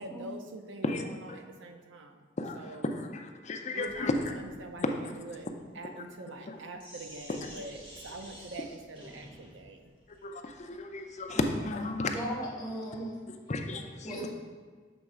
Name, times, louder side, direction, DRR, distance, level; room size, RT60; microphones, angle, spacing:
voice 1, 0.0-2.3 2.5-2.9 3.7-9.9, right 2 dB, 80° right, 5 dB, 0.6 m, -44 dB
voice 2, 2.4-4.1 6.5-6.6 10.2-12.1 13.3-14.1, left 2 dB, 40° left, 4 dB, 0.5 m, -34 dB
Sink (filling or washing), 3.7-11.7, equal, 30° right, 1.0 m, -52 dB
voice 3, 11.9-13.1 14.0-14.3, right 1 dB, 20° left, -4 dB, 1.1 m, -38 dB
7.0 x 3.1 x 4.8 m, 1.5 s
head